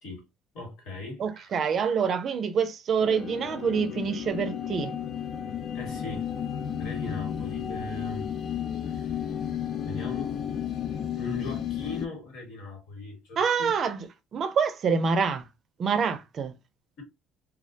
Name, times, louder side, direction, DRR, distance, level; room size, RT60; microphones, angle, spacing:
voice 1, 0.5-1.5 5.7-6.3 6.8-8.3 8.9-9.3 9.8-10.4 11.1-13.7, left 3 dB, 75° left, 1.4 m, -39 dB
voice 2, 1.2-4.9 13.4-14.1 14.3-15.5 15.8-16.5, right 6 dB, 50° right, 0.4 m, -26 dB
sound 1, 3.0-12.1, left 9 dB, 55° left, 0.3 m, -33 dB
2.3 x 2.1 x 2.6 m
supercardioid pair, 90°, 0 cm